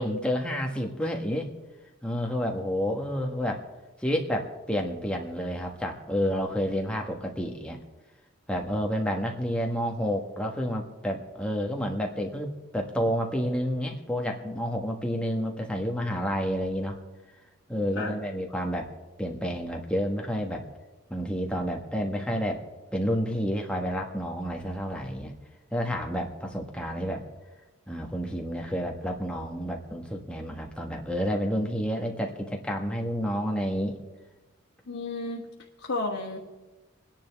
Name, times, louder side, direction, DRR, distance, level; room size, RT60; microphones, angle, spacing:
voice 1, 0.0-1.5 2.0-3.6 4.0-7.8 8.5-17.0 17.7-18.9 19.2-20.7 21.1-22.6 22.9-25.3 25.7-27.2 27.9-34.0, equal, 5° left, 1 dB, 1.3 m, -30 dB
voice 2, 34.9-35.5 35.8-36.4, left 2 dB, 85° left, -3 dB, 1.4 m, -32 dB
27.0 x 10.5 x 3.5 m, 1.2 s
head